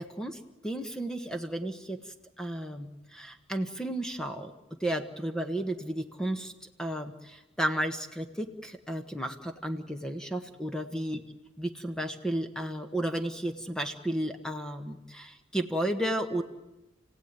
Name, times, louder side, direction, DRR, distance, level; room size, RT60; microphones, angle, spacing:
voice 1, 0.0-2.0 2.4-6.5 6.8-11.2 11.6-16.4, right 1 dB, 5° left, 6 dB, 1.4 m, -33 dB
30.0 x 17.0 x 9.7 m, 1.1 s
head